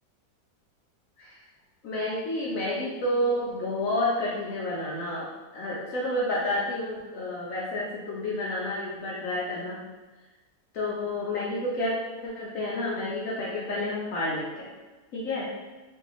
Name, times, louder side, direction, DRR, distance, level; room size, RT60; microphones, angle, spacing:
voice 1, 1.8-9.8 10.7-14.7 15.1-15.5, left 1 dB, 70° left, -5 dB, 0.8 m, -30 dB
3.1 x 2.6 x 2.9 m, 1.2 s
omnidirectional pair, 1.9 m